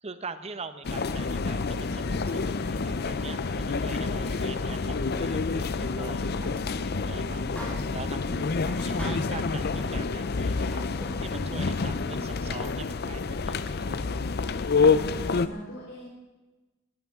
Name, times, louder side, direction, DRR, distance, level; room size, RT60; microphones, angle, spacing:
voice 1, 0.0-6.5 7.0-7.4 7.9-10.9 11.2-14.0, right 4 dB, 30° right, 10 dB, 0.9 m, -43 dB
sound 1, 0.8-15.5, left 4 dB, 50° left, 0.6 m, -28 dB
sound 2, 7.4-8.1 8.6-9.9 10.3-10.4 10.7-11.9, equal, 5° left, 4.8 m, -40 dB
voice 2, 14.8-16.0, equal, 85° left, -5 dB, 4.1 m, -44 dB
20.5 x 17.0 x 3.7 m, 1.1 s
head